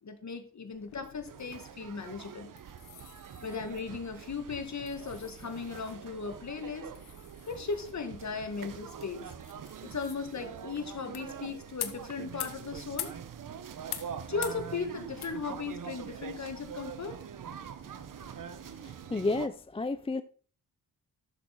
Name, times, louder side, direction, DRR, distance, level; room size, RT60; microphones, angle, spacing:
voice 1, 0.0-2.5 3.4-6.9 7.5-9.3 9.8-13.1 14.3-17.2, left 4 dB, 45° left, 2.0 m, -37 dB
sound 1, 0.7-17.6, left 11 dB, 80° left, 1.1 m, -47 dB
sound 2, 1.2-19.5, right 8 dB, 55° right, 1.0 m, -44 dB
voice 2, 18.5-20.2, left 3 dB, 15° left, 0.5 m, -32 dB
11.0 x 7.1 x 4.2 m
supercardioid pair, 55°, 39 cm